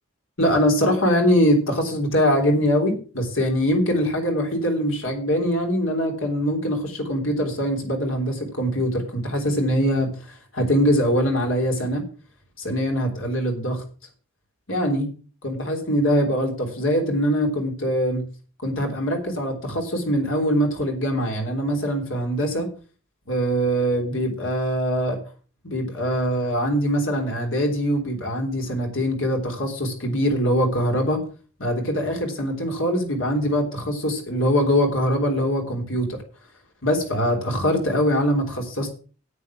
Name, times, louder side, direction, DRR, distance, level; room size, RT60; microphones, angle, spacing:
voice 1, 0.4-12.0 12.6-13.8 14.7-15.1 15.4-18.2 18.6-22.7 23.3-25.2 25.6-31.2 31.6-36.2 36.8-38.9, equal, 70° left, 2 dB, 3.4 m, -23 dB
9.7 x 8.4 x 6.1 m, 0.38 s
head